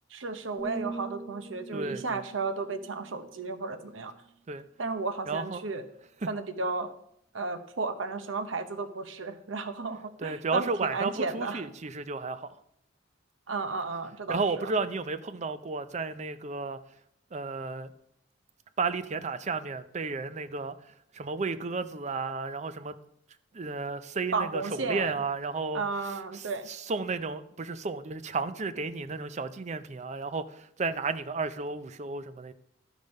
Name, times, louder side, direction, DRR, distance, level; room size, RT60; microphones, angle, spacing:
voice 1, 0.1-4.2 4.8-5.8 6.3-6.9 7.3-11.7 13.5-14.7 24.3-25.2 25.7-26.7, right 3 dB, 85° right, 0.9 m, -33 dB
sound 1, 0.6-4.5 5.0-5.3, right 3 dB, 15° left, 1.6 m, -44 dB
voice 2, 1.7-2.2 4.5-4.6 5.3-5.6 10.2-12.5 14.3-16.8 17.3-17.9 18.8-22.9 23.5-25.8 26.3-32.5, right 4 dB, 35° right, 0.5 m, -33 dB
12.5 x 5.1 x 5.3 m
head